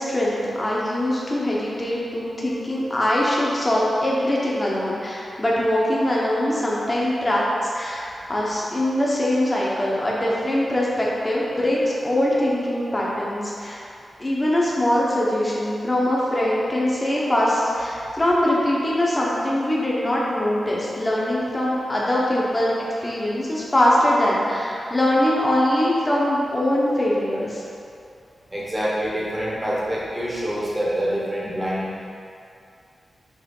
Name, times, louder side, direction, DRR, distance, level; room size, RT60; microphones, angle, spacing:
voice 1, 0.0-13.8 14.2-22.7 23.0-27.6, left 1 dB, 20° left, -5 dB, 1.1 m, -22 dB
voice 2, 28.5-31.9, equal, 15° right, -6 dB, 1.3 m, -26 dB
6.4 x 3.5 x 5.4 m, 2.5 s
wide cardioid pair, 160°, 0 cm